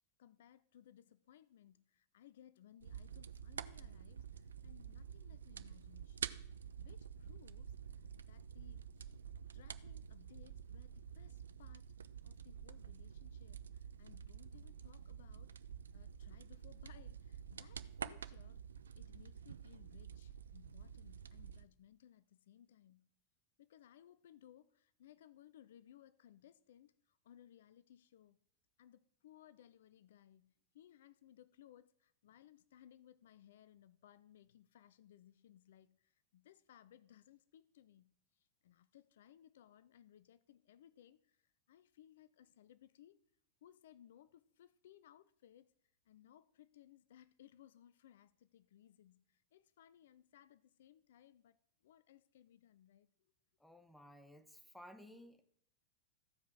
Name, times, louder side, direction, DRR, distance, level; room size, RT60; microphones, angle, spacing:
voice 1, 0.2-9.2 9.5-12.0 12.2-15.5 15.9-18.6 19.0-23.1 23.6-28.4 28.8-43.2 43.6-45.7 46.1-53.1, left 11 dB, 60° left, 0.4 m, -63 dB
sound 1, 2.8-21.7, right 7 dB, 70° right, 0.4 m, -49 dB
voice 2, 53.6-55.4, left 1 dB, 5° left, 1.1 m, -57 dB
15.0 x 5.0 x 6.1 m
figure-of-eight pair, 90°, 0 cm